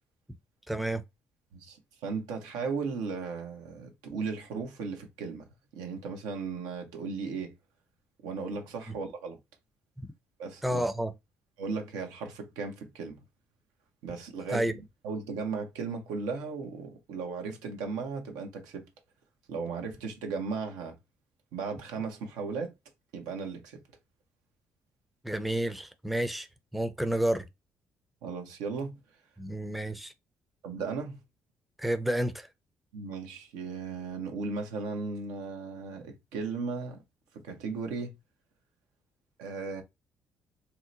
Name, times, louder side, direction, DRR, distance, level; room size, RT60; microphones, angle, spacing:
voice 1, 0.7-1.0 10.6-11.1 14.5-14.7 25.2-26.5 26.7-27.5 29.4-30.1 31.8-32.5, right 1 dB, ahead, 0.5 m, -30 dB
voice 2, 1.5-7.6 8.2-9.4 10.4-10.8 11.6-13.2 14.0-18.9 19.5-21.0 21.5-22.7 23.1-23.8 28.2-29.0 30.6-31.2 32.9-37.0 37.3-38.1 39.4-39.8, right 4 dB, 85° right, 0.8 m, -36 dB
2.9 x 2.1 x 3.8 m
supercardioid pair, 60°, 6 cm